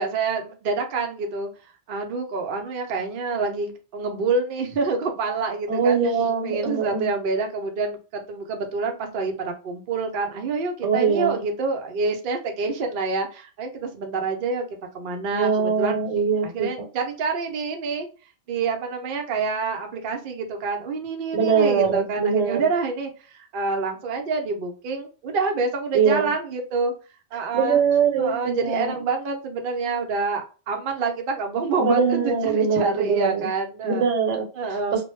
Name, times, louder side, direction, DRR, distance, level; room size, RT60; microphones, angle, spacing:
voice 1, 0.0-1.5 1.9-6.0 6.4-14.7 14.9-16.0 16.4-18.1 18.5-26.9 27.3-27.8 28.2-34.0 34.6-35.0, right 4 dB, 60° right, 3 dB, 0.6 m, -27 dB
voice 2, 5.7-7.1 10.8-11.4 15.3-16.7 21.3-22.6 25.9-26.3 27.5-28.9 31.8-33.5 33.8-34.5 34.9-35.0, right 6 dB, 75° right, 2 dB, 1.0 m, -22 dB
2.2 x 2.1 x 3.0 m, 0.34 s
omnidirectional pair, 1.2 m